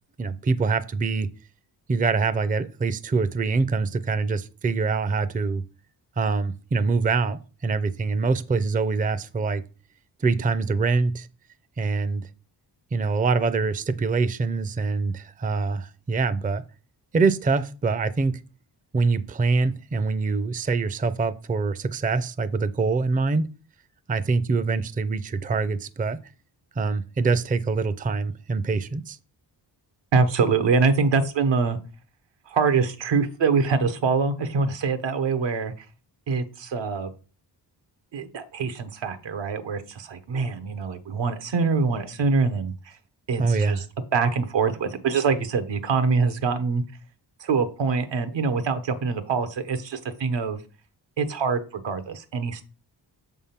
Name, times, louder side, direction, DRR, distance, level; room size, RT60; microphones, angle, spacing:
voice 1, 0.2-1.3 1.9-5.6 6.2-9.6 10.2-11.3 11.8-12.3 12.9-16.6 17.1-18.4 18.9-23.5 24.1-26.2 26.8-29.2 43.4-43.8, right 4 dB, 20° right, 0.4 m, -24 dB
voice 2, 30.1-31.8 32.5-35.9 36.3-37.1 38.1-43.0 43.3-43.8 44.1-46.8 47.4-50.6 51.2-52.6, right 4 dB, 80° right, 1.0 m, -24 dB
6.7 x 3.7 x 5.7 m
cardioid pair, 75°, 43 cm